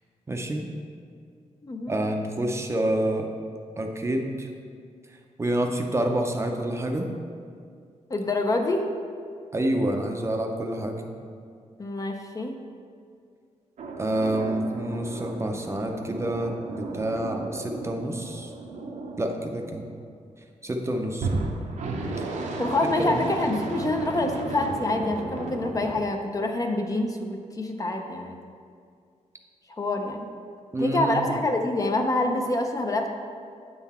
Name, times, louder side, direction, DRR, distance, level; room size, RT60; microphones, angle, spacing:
voice 1, 0.3-0.7 1.9-3.3 3.8-4.5 5.4-7.1 9.5-11.1 14.0-18.5 19.2-19.9 20.6-21.5 23.0-23.2 30.7-31.2, right 1 dB, 20° right, 3 dB, 0.5 m, -28 dB
voice 2, 1.6-2.0 8.1-8.9 11.8-12.5 22.6-28.4 29.8-30.3 30.8-33.1, left 2 dB, 30° left, 3 dB, 0.5 m, -26 dB
sound 1, 13.8-20.1 21.1-26.1, right 2 dB, 75° right, 0.7 m, -34 dB
8.1 x 3.9 x 4.2 m, 2.2 s
wide cardioid pair, 135°, 12 cm